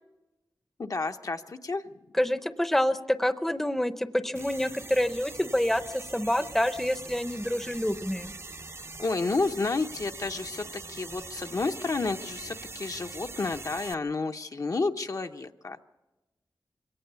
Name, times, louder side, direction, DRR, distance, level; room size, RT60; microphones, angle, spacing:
voice 1, 0.8-2.0 9.0-15.8, left 3 dB, 50° left, 6 dB, 0.8 m, -31 dB
voice 2, 2.2-8.3, left 1 dB, 5° left, 12 dB, 0.7 m, -27 dB
sound 1, 4.3-13.9, right 3 dB, 35° right, 0.6 m, -43 dB
23.0 x 17.5 x 6.8 m, 1.1 s
wide cardioid pair, 100°, 8 cm